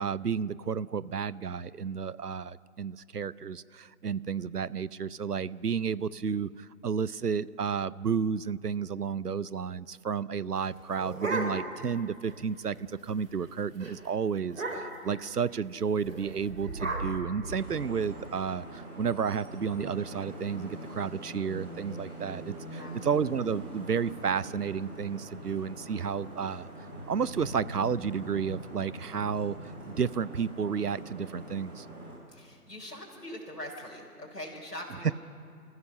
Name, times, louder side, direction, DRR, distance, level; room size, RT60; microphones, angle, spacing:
voice 1, 0.0-26.7 27.1-31.9 35.0-35.1, right 6 dB, 75° right, 20 dB, 0.7 m, -32 dB
sound 1, 10.6-11.9 12.3-12.4 12.6-13.0 13.3-13.5 13.8-13.9 14.5-15.1 16.0-18.1, right 2 dB, 55° right, 3.6 m, -35 dB
Vehicle horn car horn honking / Traffic noise roadway noise, 17.5-32.1, right 1 dB, 5° right, 1.2 m, -43 dB
voice 2, 22.8-23.1 32.3-35.1, left 1 dB, 75° left, -2 dB, 4.3 m, -42 dB
28.5 x 15.0 x 6.3 m, 2.3 s
figure-of-eight pair, 155°, 47 cm